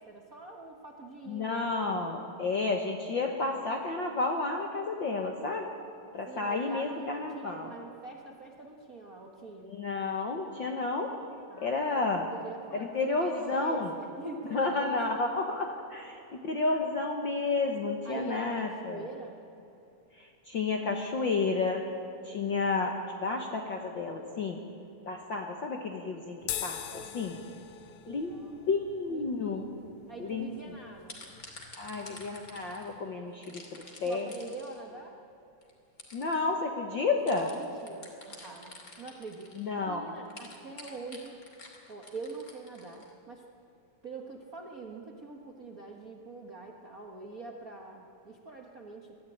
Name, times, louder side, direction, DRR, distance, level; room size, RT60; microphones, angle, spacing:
voice 1, 0.0-1.7 6.3-9.7 11.5-15.0 18.0-19.4 26.9-27.4 27.8-28.7 29.1-31.2 34.0-35.2 37.4-41.4 41.9-43.4 44.0-49.2, right 3 dB, 45° right, 1 dB, 1.1 m, -44 dB
voice 2, 1.3-5.7 6.1-7.7 9.6-11.2 11.6-12.3 12.7-13.9 14.5-19.0 20.1-21.9 22.2-24.6 25.1-27.4 28.1-28.3 28.7-29.6 30.2-30.5 31.8-34.3 36.1-37.5 39.6-40.1, left 3 dB, 55° left, 2 dB, 1.4 m, -31 dB
sound 1, 26.4-33.0, left 11 dB, 70° left, 2.3 m, -44 dB
sound 2, 30.4-30.6 31.0-32.9 33.4-34.9 35.6-35.7 36.0-36.4 37.3-39.7 40.2-43.1, left 2 dB, 30° left, 2.8 m, -49 dB
22.0 x 14.0 x 10.0 m, 2.8 s
omnidirectional pair, 3.7 m